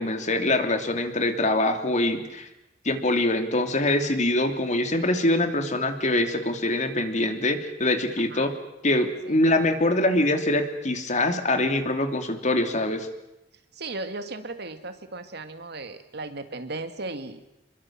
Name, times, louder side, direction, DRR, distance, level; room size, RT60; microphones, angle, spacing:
voice 1, 0.0-2.5 2.8-8.5 8.8-13.1, left 1 dB, 40° left, 6 dB, 2.9 m, -24 dB
voice 2, 8.2-8.5 9.3-9.4 13.7-17.4, right 2 dB, 65° right, 8 dB, 2.1 m, -36 dB
27.5 x 22.5 x 7.5 m, 0.90 s
head